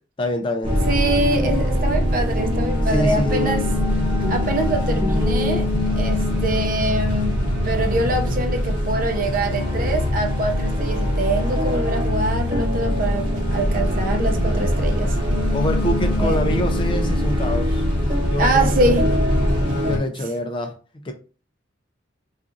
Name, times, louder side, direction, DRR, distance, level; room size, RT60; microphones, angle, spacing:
voice 1, 0.2-0.8 2.9-3.7 15.5-17.8 18.3-19.2 19.8-20.7 21.0-21.1, left 1 dB, 25° left, 0.4 m, -26 dB
sound 1, 0.6-20.0, left 1 dB, 30° right, 1.2 m, -22 dB
voice 2, 0.9-3.6 4.3-5.7 6.0-15.2 16.2-16.4 18.4-19.1, right 2 dB, 45° right, 0.6 m, -24 dB
2.6 x 2.4 x 3.6 m
head